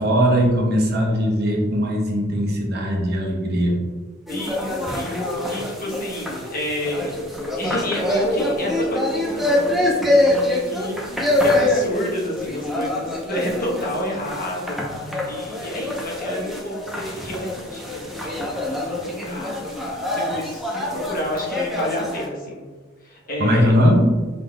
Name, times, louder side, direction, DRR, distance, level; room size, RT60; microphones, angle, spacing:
voice 1, 0.0-3.8 23.4-24.2, equal, 55° right, -1 dB, 0.9 m, -19 dB
voice 2, 4.3-7.1 7.6-19.7 20.1-22.6 23.0-23.7, equal, 45° left, -3 dB, 1.0 m, -30 dB
sound 1, 4.3-22.3, left 1 dB, ahead, 0.7 m, -25 dB
5.4 x 3.8 x 2.3 m, 1.4 s
head